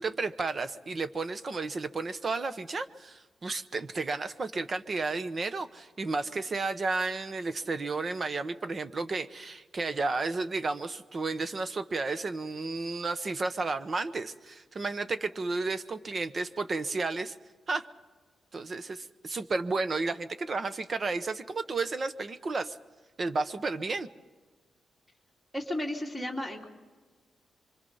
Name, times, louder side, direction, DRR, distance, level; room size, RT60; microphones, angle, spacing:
voice 1, 0.0-17.3 17.7-17.9 18.5-22.8 23.2-24.1, right 3 dB, 30° right, 11 dB, 0.9 m, -32 dB
voice 2, 25.5-26.6, left 1 dB, ahead, 0 dB, 3.2 m, -33 dB
25.5 x 25.0 x 5.5 m, 1.3 s
wide cardioid pair, 160°, 0 cm